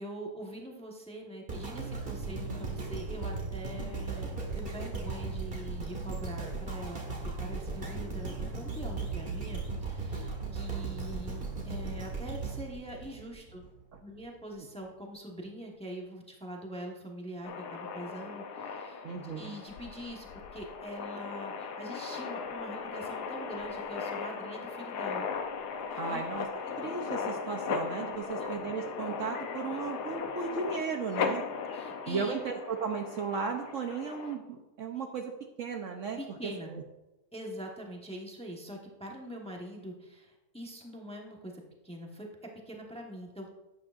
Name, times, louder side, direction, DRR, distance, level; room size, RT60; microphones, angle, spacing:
voice 1, 0.0-13.6 14.0-20.3 20.5-25.3 26.1-26.2 28.2-28.5 31.2-31.4 31.7-32.4 36.2-36.7 37.3-43.5, equal, 5° left, 0 dB, 1.0 m, -43 dB
sound 1, 1.5-13.7 14.2-14.3, right 4 dB, 35° right, 1.6 m, -37 dB
sound 2, 17.4-34.4, left 5 dB, 80° left, 1.3 m, -37 dB
voice 2, 19.0-19.4 26.0-26.5 26.8-31.4 32.1-35.3 35.6-36.8, right 5 dB, 60° right, 4 dB, 1.0 m, -35 dB
11.5 x 8.7 x 2.5 m, 1.0 s
omnidirectional pair, 1.7 m